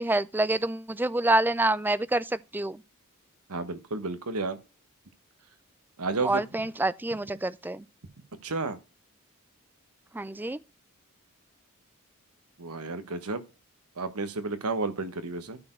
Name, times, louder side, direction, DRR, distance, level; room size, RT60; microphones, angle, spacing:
voice 1, 0.0-2.8 6.2-7.8 10.1-10.6, right 2 dB, 10° right, 0.4 m, -27 dB
voice 2, 3.5-4.6 6.0-6.4 8.4-8.8 12.6-13.4 14.0-15.6, right 3 dB, 85° right, 1.2 m, -31 dB
13.0 x 4.5 x 4.4 m
head